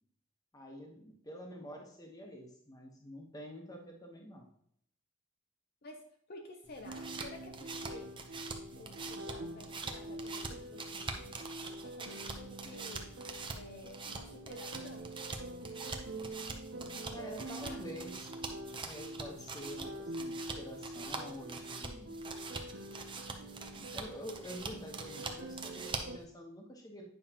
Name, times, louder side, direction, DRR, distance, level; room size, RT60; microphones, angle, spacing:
voice 1, 0.5-4.5 17.1-18.3 18.8-22.2 23.5-27.0, equal, 20° left, 1 dB, 1.1 m, -47 dB
voice 2, 6.3-8.1 8.7-11.4 11.8-13.1 13.5-15.2 17.6-18.0, left 2 dB, 50° left, 3 dB, 0.7 m, -52 dB
sound 1, 6.7-26.2, right 4 dB, 25° right, 0.6 m, -44 dB
sound 2, 6.8-26.2, right 1 dB, 65° right, 0.6 m, -46 dB
9.0 x 5.6 x 2.9 m, 0.68 s
head